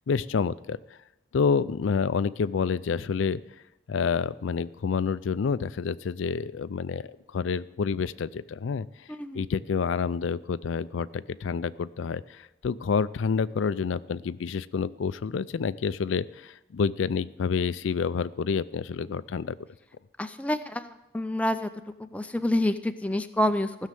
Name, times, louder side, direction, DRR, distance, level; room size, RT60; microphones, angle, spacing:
voice 1, 0.1-1.0 1.3-3.4 3.9-8.9 9.3-19.6, left 5 dB, 85° left, 16 dB, 0.4 m, -28 dB
voice 2, 9.1-9.5 20.2-21.7 22.0-23.8, left 1 dB, 5° left, 9 dB, 0.4 m, -28 dB
15.5 x 6.5 x 7.6 m, 0.93 s
head